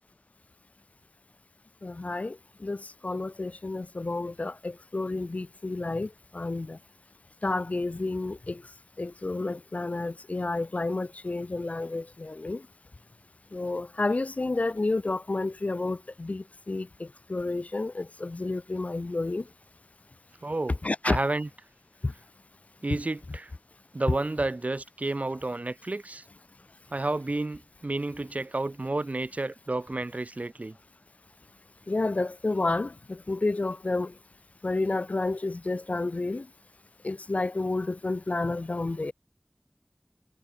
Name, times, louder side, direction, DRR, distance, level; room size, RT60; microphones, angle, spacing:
voice 1, 1.8-6.8 7.4-8.6 9.0-12.6 13.5-19.4 20.8-21.2 22.0-22.1 22.9-23.0 31.9-34.1 34.6-36.5 37.0-39.1, left 2 dB, 65° left, 0.4 m, -30 dB
voice 2, 20.4-20.8 21.0-21.5 22.8-23.5 23.9-26.2 26.9-30.8, right 2 dB, 70° right, 1.3 m, -31 dB
wide cardioid pair, 45°, 3 cm